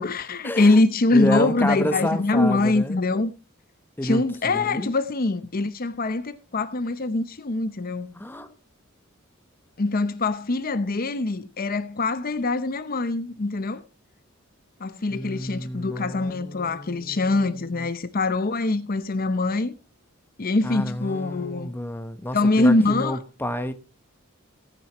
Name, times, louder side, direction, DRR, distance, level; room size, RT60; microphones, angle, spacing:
voice 1, 0.0-3.3 4.0-8.1 9.8-13.8 14.8-19.7 20.4-21.7 22.3-23.2, left 2 dB, 45° left, 0.7 m, -23 dB
voice 2, 1.1-3.0 4.0-4.9 8.2-8.5 15.1-17.9 20.6-23.7, left 1 dB, 10° left, 0.9 m, -30 dB
18.0 x 9.1 x 3.0 m
head